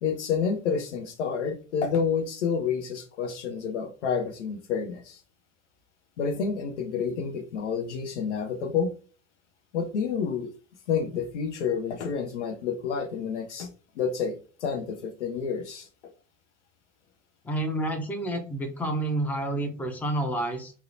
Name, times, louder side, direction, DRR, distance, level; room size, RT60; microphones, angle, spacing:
voice 1, 0.0-5.2 6.2-8.9 9.7-10.5 10.9-13.7 14.0-15.9, left 6 dB, 75° left, 0.7 m, -29 dB
voice 2, 17.4-20.7, right 1 dB, 5° left, 0.5 m, -29 dB
2.8 x 2.1 x 2.5 m
figure-of-eight pair, 75°, 35 cm